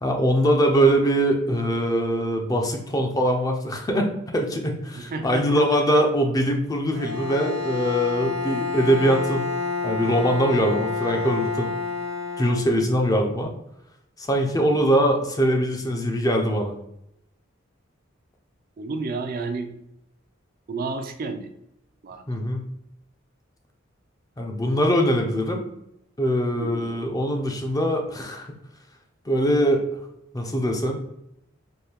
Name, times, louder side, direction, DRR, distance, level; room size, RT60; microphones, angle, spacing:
voice 1, 0.0-9.5 9.8-11.7 12.4-13.5 14.3-16.7 22.3-22.6 24.4-25.6 26.2-28.6 29.3-29.8 30.3-31.0, equal, 20° left, 3 dB, 0.5 m, -22 dB
voice 2, 4.9-5.8 14.5-14.9 18.8-19.7 20.7-21.5 22.0-22.2 26.6-26.9, right 3 dB, 50° right, 6 dB, 0.4 m, -31 dB
Bowed string instrument, 6.9-13.1, left 4 dB, 75° right, 0.8 m, -29 dB
4.3 x 2.2 x 3.4 m, 0.80 s
head